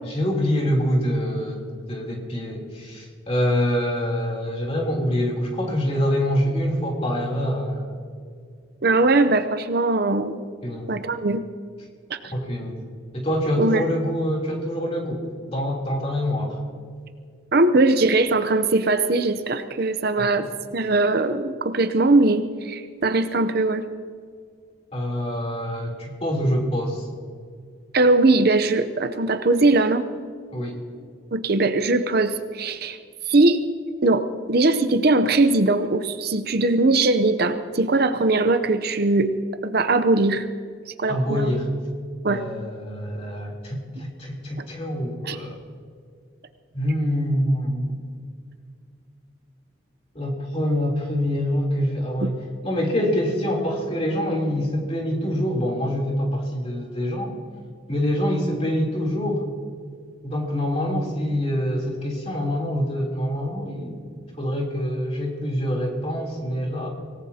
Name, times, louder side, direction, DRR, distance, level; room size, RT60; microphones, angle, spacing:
voice 1, 0.0-8.0 10.6-10.9 12.3-12.8 13.1-16.6 20.2-20.5 24.9-27.1 30.5-30.7 41.1-41.7 42.3-45.5 46.7-48.2 50.1-52.4 52.6-57.3 57.9-59.5 60.2-64.0 64.4-66.9, equal, 30° left, -1 dB, 3.3 m, -25 dB
voice 2, 8.8-10.4 10.9-11.4 12.1-12.2 13.6-13.8 17.5-20.5 20.7-23.9 27.9-30.0 31.3-33.0 33.3-33.6 34.0-39.4 39.6-40.5 41.0-41.5 42.2-42.5 45.2-45.4, right 2 dB, 50° right, 9 dB, 0.7 m, -20 dB
25.0 x 18.5 x 2.9 m, 2.1 s
head